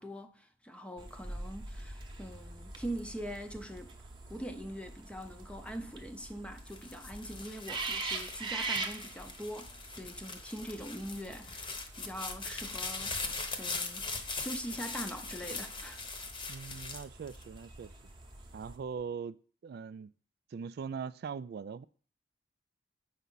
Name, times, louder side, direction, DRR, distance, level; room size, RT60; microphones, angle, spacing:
voice 1, 0.0-3.9 4.3-16.0, equal, 5° left, 0.6 m, -43 dB
sound 1, 1.0-18.8, right 3 dB, 25° right, 0.9 m, -44 dB
sound 2, 6.6-17.9 18.5-19.0, left 3 dB, 25° left, 0.9 m, -41 dB
voice 2, 16.5-17.9 18.5-19.4 19.6-20.1 20.5-21.8, right 6 dB, 55° right, 0.3 m, -41 dB
8.2 x 5.6 x 4.0 m
head